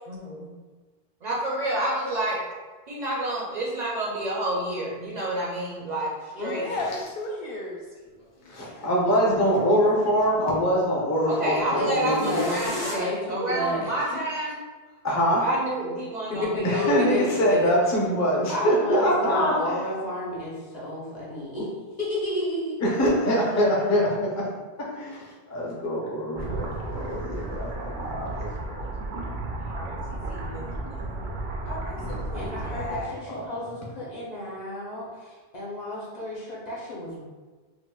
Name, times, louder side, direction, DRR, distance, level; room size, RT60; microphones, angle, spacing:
voice 1, 0.1-0.5 1.2-2.4 2.9-6.7 11.2-14.6 15.4-16.9 17.2-17.6 29.6-31.2, right 1 dB, 50° right, -4 dB, 0.6 m, -29 dB
voice 2, 6.5-7.8 31.6-33.2, left 2 dB, 65° left, -2 dB, 0.7 m, -35 dB
sound 1, 6.7-6.8 8.1-9.1 11.9-12.9, left 1 dB, 90° left, 1.7 m, -37 dB
voice 3, 8.5-12.6 15.0-15.5 16.6-19.8 22.8-24.5 24.8-28.5 28.8-28.9 32.0-32.2 33.3-33.4, equal, 20° left, -5 dB, 0.5 m, -24 dB
voice 4, 11.4-14.2 16.3-17.7 18.5-21.7 22.0-22.8 32.3-37.2, left 1 dB, 45° left, -6 dB, 0.9 m, -31 dB
sound 2, 26.4-33.0, right 2 dB, 80° right, 0.8 m, -33 dB
4.6 x 2.0 x 2.3 m, 1.3 s
omnidirectional pair, 1.0 m